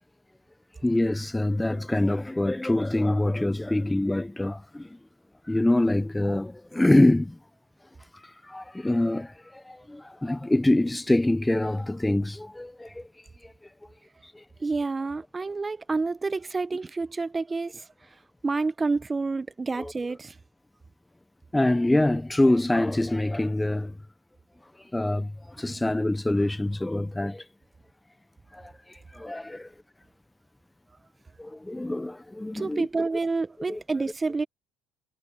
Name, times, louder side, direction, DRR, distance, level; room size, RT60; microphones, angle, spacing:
voice 1, 0.8-4.9 5.5-7.4 8.4-13.1 13.4-13.5 14.3-14.4 19.8-19.9 21.5-23.9 24.9-27.4 28.5-28.7 29.1-29.7 31.4-32.9 33.7-33.8, left 1 dB, 10° left, 0.7 m, -25 dB
voice 2, 14.6-17.9 18.4-20.4 32.5-34.4, right 3 dB, 25° right, 0.9 m, -28 dB
hypercardioid pair, 70°, 0 cm